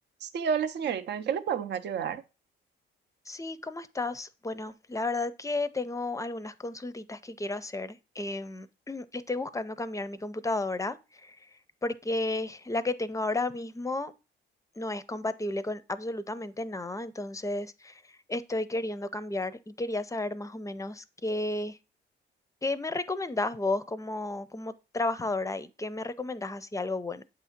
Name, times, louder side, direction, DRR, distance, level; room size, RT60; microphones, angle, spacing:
voice 1, 0.2-2.2, right 7 dB, 60° right, 0.6 m, -30 dB
voice 2, 3.3-11.4 11.8-14.1 14.8-18.0 18.3-21.8 22.6-27.2, left 2 dB, 15° left, 0.5 m, -33 dB
8.0 x 2.7 x 5.8 m
cardioid pair, 90°, 20 cm